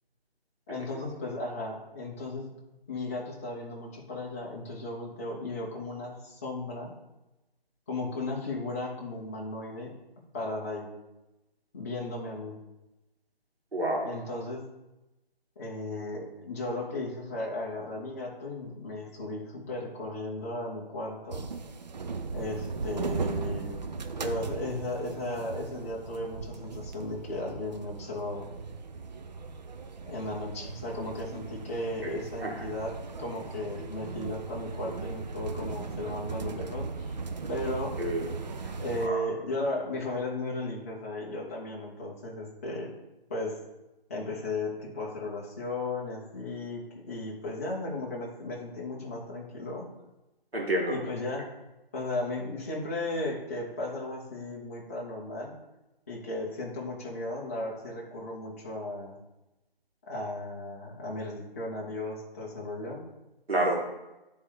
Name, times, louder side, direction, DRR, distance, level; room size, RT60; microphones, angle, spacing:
voice 1, 0.7-2.5 2.9-6.9 7.9-9.9 10.3-10.9 11.7-12.6 14.0-14.6 15.6-21.5 22.3-23.8 24.2-28.5 30.0-32.9 33.2-37.1 37.5-38.0 38.8-42.9 43.3-43.6 44.1-49.9 50.9-51.5 51.9-55.5 56.1-59.1 60.1-63.0, left 2 dB, 15° left, -4 dB, 0.6 m, -35 dB
voice 2, 13.7-14.1 32.0-32.6 38.0-38.3 39.0-39.2 50.5-51.0 63.5-63.9, right 1 dB, 85° right, -2 dB, 2.1 m, -29 dB
sound 1, 21.3-39.1, right 4 dB, 45° right, 0.5 m, -38 dB
9.6 x 3.7 x 3.2 m, 0.98 s
figure-of-eight pair, 150°, 30 cm